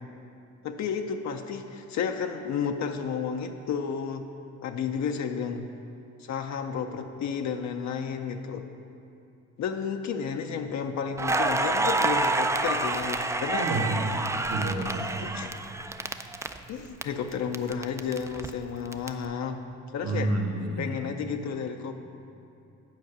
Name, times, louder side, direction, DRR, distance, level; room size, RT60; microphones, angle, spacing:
voice 1, 0.6-4.3 4.6-5.7 6.2-8.7 9.6-13.7 15.2-15.5 16.7-19.6 19.9-20.3 20.8-22.0, left 6 dB, 65° left, 5 dB, 0.6 m, -32 dB
Crackle, 11.2-17.0 17.3-19.1, right 2 dB, 10° right, 0.3 m, -28 dB
voice 2, 13.6-14.0 14.5-15.2 20.0-21.1, right 2 dB, 55° right, 2 dB, 1.1 m, -29 dB
9.3 x 4.8 x 6.7 m, 2.6 s
cardioid pair, 90°, 30 cm